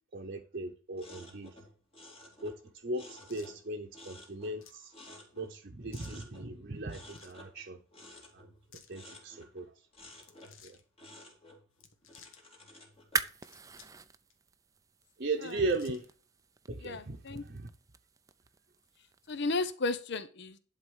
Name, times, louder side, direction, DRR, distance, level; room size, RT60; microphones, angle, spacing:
voice 1, 0.1-1.6 2.4-5.0 5.3-7.8 8.3-8.5 8.9-9.9 10.6-10.8 15.2-16.1 16.7-17.7, right 2 dB, 45° right, 0.8 m, -37 dB
sound 1, 0.9-3.7 3.9-5.7 5.9-6.5 6.9-9.7 9.9-10.6 11.0-13.3, left 1 dB, 30° left, 2.9 m, -53 dB
sound 2, 3.3-3.6 4.6-4.8 5.9-6.2 7.0-7.4 8.5-8.9 10.1-10.8 11.7-12.4 13.2-14.0 14.3-14.4 15.2-16.2, left 6 dB, 80° left, 1.4 m, -57 dB
sound 3, 12.9-19.7, right 4 dB, 15° right, 0.4 m, -42 dB
voice 2, 16.8-17.4 19.3-20.6, left 3 dB, 55° left, 0.7 m, -34 dB
11.0 x 4.2 x 6.4 m
head